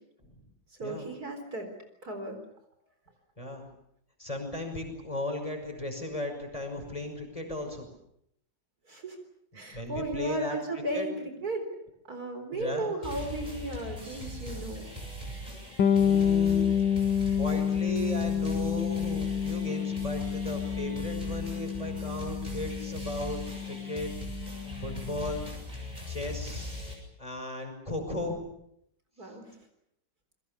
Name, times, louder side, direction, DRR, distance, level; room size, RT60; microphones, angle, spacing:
voice 1, 0.8-1.7 2.0-2.4 8.9-9.2 9.5-11.7 12.0-14.9 29.2-29.6, right 1 dB, 55° right, 6 dB, 4.5 m, -35 dB
voice 2, 3.4-3.7 4.2-7.9 9.5-10.6 10.9-11.1 12.5-12.9 15.9-23.4 23.6-24.2 24.8-25.5 26.1-26.7 27.2-28.5, left 1 dB, 15° left, 4 dB, 5.9 m, -36 dB
sound 1, 13.0-26.9, equal, 20° right, 7.8 m, -40 dB
Bass guitar, 15.8-25.4, left 8 dB, 80° left, 1.9 m, -29 dB
29.0 x 22.5 x 6.9 m, 0.76 s
omnidirectional pair, 2.0 m